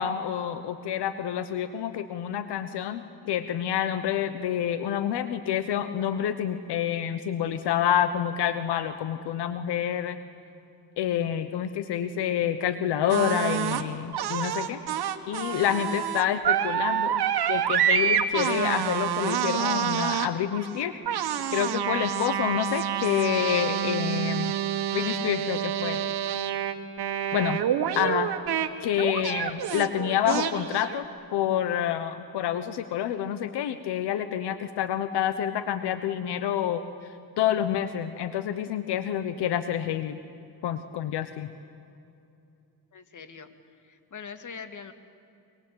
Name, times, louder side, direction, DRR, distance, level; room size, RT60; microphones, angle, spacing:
voice 1, 0.0-10.2 11.0-14.8 15.3-17.2 17.5-20.9 21.5-24.6 24.9-26.0 27.3-27.6 28.0-28.3 28.8-31.1 31.3-36.8 37.4-40.2 40.6-41.5, left 10 dB, 85° left, 11 dB, 1.2 m, -28 dB
sound 1, 13.1-13.8 14.1-28.7 29.0-31.0, right 9 dB, 70° right, 1.8 m, -28 dB
voice 2, 42.9-43.5 43.8-44.9, left 6 dB, 50° left, 9 dB, 2.4 m, -43 dB
25.0 x 25.0 x 8.8 m, 2.7 s
cardioid pair, 85°, 39 cm